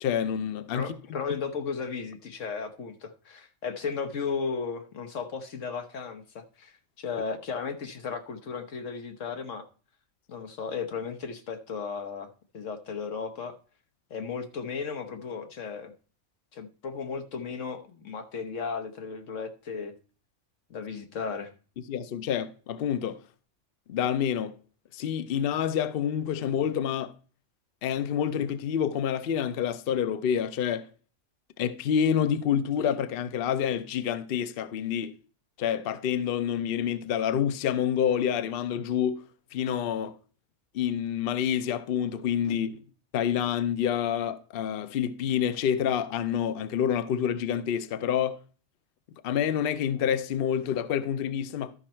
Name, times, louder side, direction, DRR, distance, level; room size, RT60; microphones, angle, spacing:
voice 1, 0.0-0.9 21.9-23.2 23.9-24.5 24.9-27.1 27.8-30.9 31.6-35.1 35.6-39.2 39.5-40.1 40.7-42.8 43.1-48.4 49.2-51.7, left 8 dB, 60° left, 0.7 m, -28 dB
voice 2, 0.7-9.7 10.3-13.5 14.1-15.9 16.5-19.9 20.7-21.5, left 5 dB, 85° left, 1.4 m, -35 dB
12.5 x 5.3 x 4.3 m
omnidirectional pair, 1.3 m